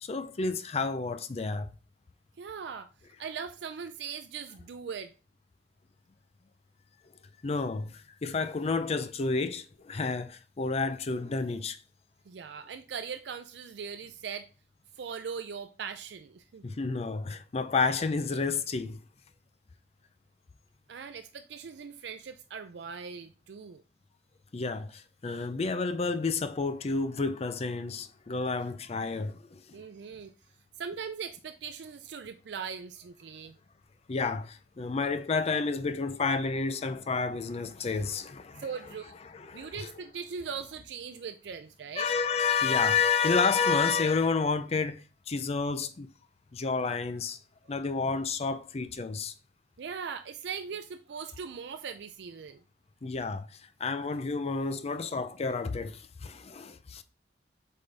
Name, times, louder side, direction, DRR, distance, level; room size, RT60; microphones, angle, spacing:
voice 1, 0.0-1.7 7.4-11.8 16.6-19.0 24.5-29.6 34.1-38.7 39.3-39.9 42.0-46.1 46.5-47.4 47.7-49.3 53.0-53.5 53.8-57.0, left 4 dB, 35° left, 0.5 m, -30 dB
voice 2, 2.4-2.9 3.2-5.1 12.3-14.5 15.0-16.7 20.9-23.8 29.7-30.3 30.8-33.6 38.6-39.1 39.5-42.1 49.8-52.6, right 6 dB, 70° right, 0.4 m, -40 dB
7.8 x 3.7 x 3.3 m
head